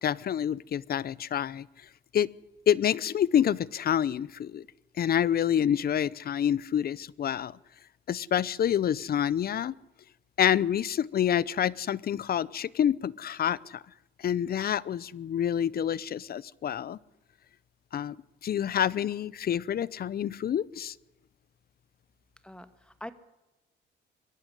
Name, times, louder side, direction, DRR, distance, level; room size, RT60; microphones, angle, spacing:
voice 1, 0.0-1.7 2.1-2.3 2.7-4.7 5.0-7.5 8.1-9.7 10.4-13.8 14.2-17.0 17.9-18.2 18.4-20.9, left 9 dB, 50° left, 22 dB, 0.7 m, -27 dB
voice 2, 22.4-23.1, left 1 dB, 5° left, 11 dB, 1.7 m, -43 dB
23.5 x 11.5 x 10.0 m, 1.0 s
cardioid pair, 90°, 20 cm